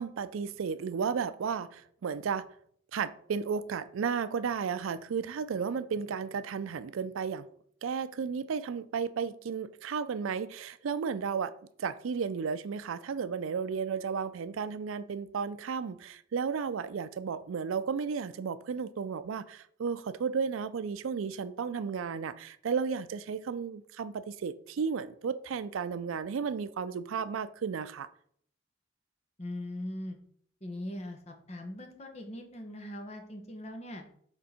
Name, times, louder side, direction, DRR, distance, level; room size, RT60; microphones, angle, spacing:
voice 1, 0.0-2.5 2.9-7.5 7.8-11.5 11.8-28.1, right 6 dB, 90° right, 0.4 m, -33 dB
voice 2, 29.4-30.2 30.6-34.0, left 1 dB, 30° left, 1.0 m, -40 dB
6.8 x 3.7 x 4.2 m
head